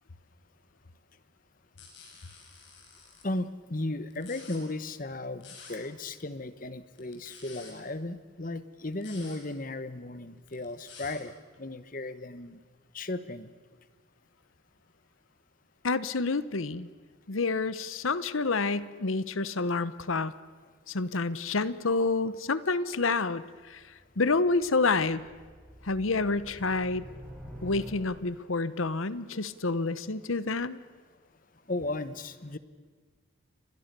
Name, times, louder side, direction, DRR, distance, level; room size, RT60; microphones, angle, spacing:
sound 1, 1.8-3.2 4.1-4.6 5.4-5.7 6.9-7.7 8.9-9.4 10.4-11.1, left 5 dB, 60° left, 7.0 m, -49 dB
voice 1, 3.2-12.6 12.9-13.5 31.7-32.6, left 2 dB, 40° left, 13 dB, 1.2 m, -35 dB
voice 2, 15.8-16.9 17.3-20.3 20.9-23.4 23.7-23.8 24.2-25.2 25.8-27.1 27.6-30.8, left 3 dB, 80° left, 16 dB, 1.0 m, -28 dB
sound 2, 23.4-28.5, equal, ahead, 6.6 m, -48 dB
30.0 x 24.5 x 6.9 m, 1.5 s
head